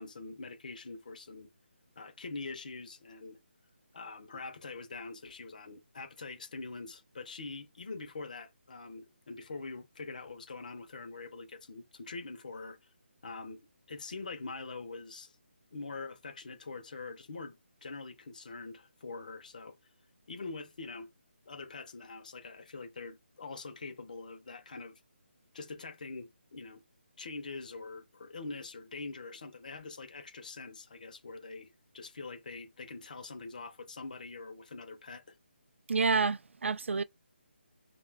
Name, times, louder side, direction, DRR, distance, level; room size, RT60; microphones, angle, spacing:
voice 1, 0.0-1.5 2.0-3.4 3.9-12.9 13.2-15.4 15.7-19.8 20.3-21.1 21.5-25.0 25.5-26.8 27.2-35.4, left 3 dB, 40° left, 0.6 m, -44 dB
voice 2, 35.9-37.0, right 4 dB, 80° right, 0.4 m, -28 dB
2.3 x 2.2 x 3.3 m
hypercardioid pair, 175°, 6 cm